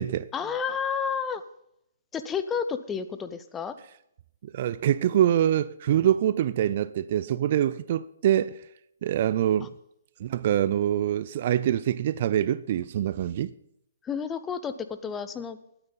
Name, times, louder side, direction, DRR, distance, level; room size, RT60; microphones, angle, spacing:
voice 1, 0.3-1.4 2.1-3.8 9.6-9.7 14.0-15.6, left 6 dB, 15° left, 0.8 m, -31 dB
voice 2, 4.5-8.6 9.0-9.7 10.2-13.5, right 11 dB, 45° right, 0.4 m, -25 dB
20.0 x 8.9 x 4.0 m
figure-of-eight pair, 130°, 0 cm